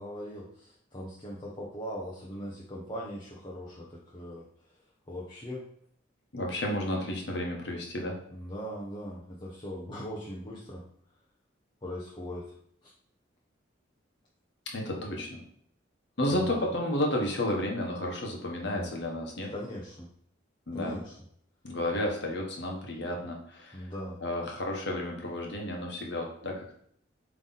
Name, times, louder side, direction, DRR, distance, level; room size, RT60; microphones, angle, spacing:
voice 1, 0.0-4.4 5.1-5.6 8.3-10.8 11.8-12.5 16.3-16.6 18.7-18.9 19.5-20.1 20.7-21.1 23.7-24.2, equal, 25° left, -5 dB, 1.0 m, -40 dB
voice 2, 6.3-8.2 14.7-15.4 16.2-19.5 20.7-21.0 21.6-23.9 24.2-26.7, left 1 dB, 60° left, 0 dB, 1.4 m, -32 dB
7.8 x 3.4 x 4.1 m, 0.65 s
head